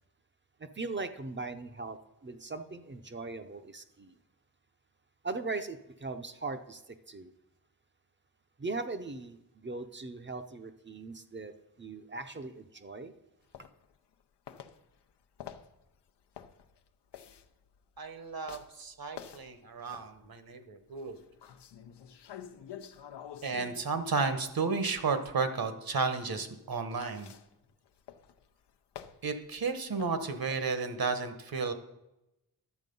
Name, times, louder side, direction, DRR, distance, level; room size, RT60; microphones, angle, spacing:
voice 1, 0.6-4.2 5.2-7.3 8.6-13.1, right 3 dB, 30° right, 8 dB, 0.6 m, -39 dB
sound 1, 13.5-14.2 14.5-20.4 20.9-24.8 26.5-30.8, left 9 dB, 85° left, 0.7 m, -50 dB
voice 2, 18.0-21.2 23.4-27.3 29.2-31.7, right 4 dB, 60° right, 9 dB, 1.2 m, -33 dB
11.0 x 7.3 x 5.3 m, 0.91 s
wide cardioid pair, 105°, 40 cm